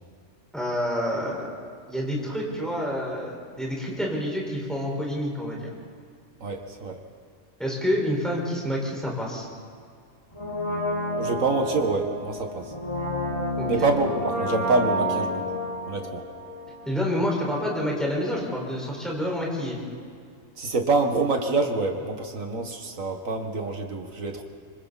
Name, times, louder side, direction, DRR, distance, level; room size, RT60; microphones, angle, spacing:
voice 1, 0.5-1.5 1.9-5.7 7.6-9.5 13.6-13.9 16.8-19.8, equal, ahead, -3 dB, 5.0 m, -28 dB
voice 2, 6.4-7.0 11.2-12.7 13.7-15.6 15.9-16.2 20.6-24.4, right 3 dB, 90° right, 4 dB, 2.2 m, -26 dB
Brass instrument, 10.3-17.2 17.4-17.5, equal, 30° left, 6.5 m, -30 dB
26.0 x 24.5 x 4.2 m, 2.2 s
omnidirectional pair, 1.3 m